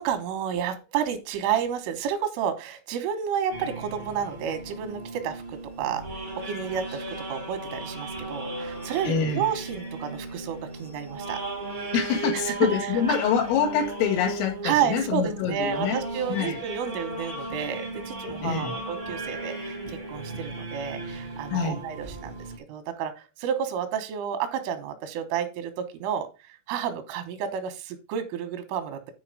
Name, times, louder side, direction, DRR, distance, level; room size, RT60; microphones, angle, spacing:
voice 1, 0.0-6.1 6.5-11.4 11.8-11.9 12.3-12.6 14.6-29.1, right 8 dB, 85° right, 8 dB, 3.7 m, -31 dB
sound 1, 3.5-22.6, right 2 dB, 65° right, 0.4 m, -36 dB
voice 2, 9.1-9.5 11.9-16.0 16.3-16.6 18.4-18.7 21.5-21.8, left 7 dB, 90° left, 1 dB, 4.4 m, -25 dB
10.0 x 4.6 x 4.9 m, 0.30 s
omnidirectional pair, 5.7 m